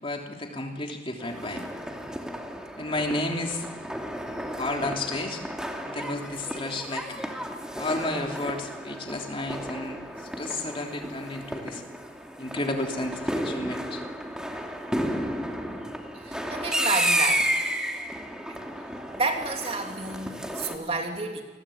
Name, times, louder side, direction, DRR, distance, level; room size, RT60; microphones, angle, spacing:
voice 1, 0.0-1.6 2.8-3.7 4.3-5.4 5.8-7.2 7.8-10.0 10.4-11.8 12.4-14.0, left 2 dB, 30° left, 2 dB, 3.3 m, -32 dB
sound 1, 1.2-20.8, equal, 5° right, 2.5 m, -32 dB
voice 2, 16.2-17.5 19.0-21.4, right 3 dB, 30° right, 3 dB, 2.9 m, -30 dB
29.5 x 21.5 x 8.8 m, 1.3 s
head